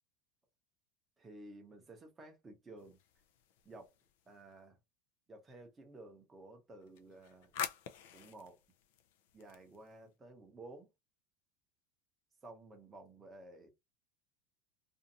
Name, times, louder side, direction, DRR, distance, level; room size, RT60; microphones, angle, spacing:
voice 1, 1.2-3.0 3.6-3.9 4.3-4.8 5.3-7.6 8.1-8.6 9.3-10.9 12.4-13.7, right 2 dB, 15° right, 0.7 m, -54 dB
sound 1, 2.8-4.5 6.8-10.1, left 9 dB, 70° left, 0.4 m, -47 dB
2.6 x 2.4 x 2.8 m
supercardioid pair, 170°, 0 cm